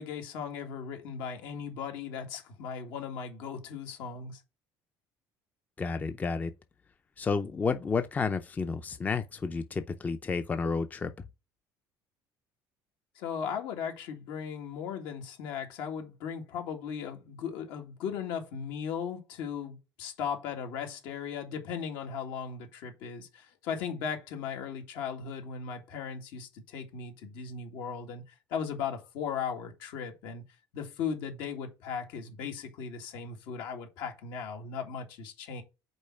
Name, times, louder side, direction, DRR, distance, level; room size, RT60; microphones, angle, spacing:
voice 1, 0.0-4.4 13.2-28.2 28.5-30.4 30.7-35.6, left 7 dB, 80° left, 1.8 m, -37 dB
voice 2, 5.8-6.5 7.2-11.3, left 4 dB, 20° left, 0.5 m, -31 dB
5.2 x 4.2 x 5.7 m
cardioid pair, 120°, 7 cm